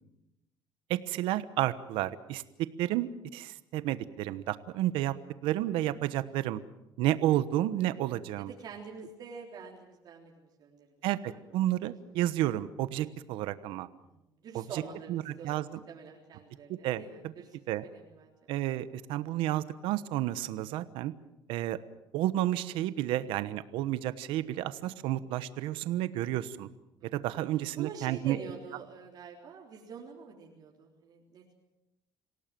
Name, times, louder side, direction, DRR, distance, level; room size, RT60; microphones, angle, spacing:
voice 1, 0.9-2.4 2.8-5.1 5.4-6.6 7.0-8.5 11.0-13.9 14.5-14.8 15.1-15.7 16.7-17.3 17.7-17.8 18.5-21.1 21.5-21.8 22.1-26.7 27.1-28.4, right 14 dB, 85° right, 14 dB, 1.1 m, -31 dB
voice 2, 8.6-10.9 11.3-11.6 14.0-17.6 17.8-18.3 27.0-27.1 27.7-31.5, right 5 dB, 50° right, -1 dB, 3.7 m, -46 dB
27.0 x 17.5 x 7.6 m, 0.93 s
cardioid pair, 135°, 9 cm